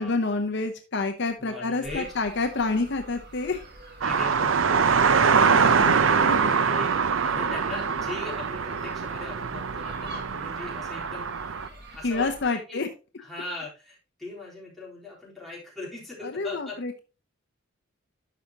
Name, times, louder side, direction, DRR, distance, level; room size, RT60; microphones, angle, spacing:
voice 1, 0.0-3.6 5.4-6.4 12.0-12.9 16.2-17.0, left 3 dB, 60° left, 5 dB, 0.8 m, -28 dB
voice 2, 1.4-2.1 4.0-12.9 13.2-16.8, left 2 dB, ahead, -7 dB, 3.8 m, -40 dB
sound 1, 1.8-12.4, right 1 dB, 55° right, 1.7 m, -47 dB
sound 2, 4.0-11.7, right 6 dB, 70° right, 0.6 m, -23 dB
12.0 x 5.2 x 2.9 m, 0.32 s
head